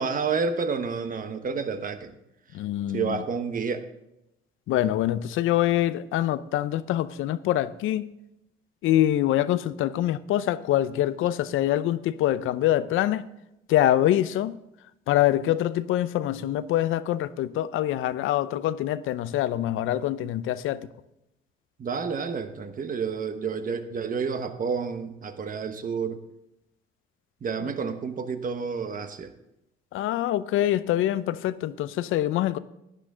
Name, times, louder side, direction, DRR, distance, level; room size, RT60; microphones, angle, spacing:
voice 1, 0.0-2.1 2.9-3.9 21.8-26.2 27.4-29.3, right 5 dB, 40° right, 1.2 m, -30 dB
voice 2, 2.5-3.2 4.7-8.1 8.8-13.3 13.7-14.6 15.1-20.9 29.9-32.6, left 13 dB, 75° left, 0.6 m, -25 dB
11.5 x 9.8 x 3.8 m
cardioid pair, 85°, 21 cm